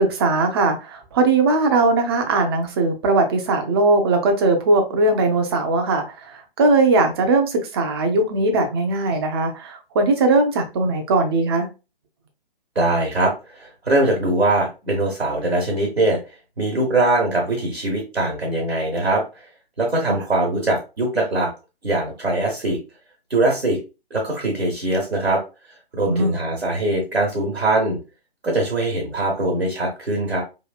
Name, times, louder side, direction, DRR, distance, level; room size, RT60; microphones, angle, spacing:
voice 1, 0.0-6.0 6.6-11.7 20.1-20.2 26.1-26.3, right 3 dB, 25° right, 0.5 m, -19 dB
voice 2, 12.7-16.2 16.6-19.2 19.8-21.5 21.8-22.8 23.3-23.8 24.1-25.4 25.9-28.0 28.4-30.4, right 2 dB, 90° right, 1.1 m, -22 dB
3.0 x 2.6 x 2.3 m
figure-of-eight pair, 130°, 30 cm